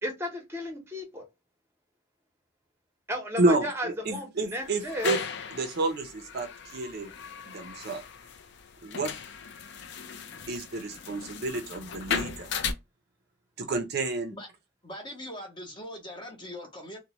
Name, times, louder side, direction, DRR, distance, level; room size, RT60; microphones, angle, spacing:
voice 1, 0.0-1.2 3.1-5.2, equal, 10° right, 0.8 m, -34 dB
voice 2, 3.4-5.2 5.5-7.1 7.5-8.0 8.8-9.1 10.5-12.5 13.6-14.3, right 2 dB, 50° right, 0.4 m, -30 dB
sound 1, 4.6-12.7, left 6 dB, 55° left, 0.4 m, -37 dB
voice 3, 14.8-17.0, left 1 dB, 25° left, 0.7 m, -41 dB
2.9 x 2.1 x 2.9 m
head